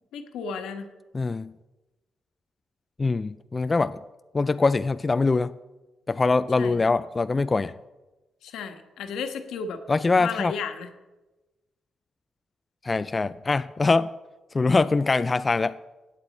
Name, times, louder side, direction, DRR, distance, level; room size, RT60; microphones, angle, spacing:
voice 1, 0.1-0.9 6.6-6.8 8.4-9.8 10.2-10.9, left 6 dB, 90° left, 5 dB, 1.3 m, -33 dB
voice 2, 1.1-1.5 3.0-4.0 4.3-5.5 6.1-7.7 9.9-10.5 12.8-14.1 14.5-15.8, left 3 dB, 25° left, 13 dB, 0.3 m, -23 dB
15.5 x 9.0 x 4.2 m, 1.1 s
cardioid pair, 105°, 0 cm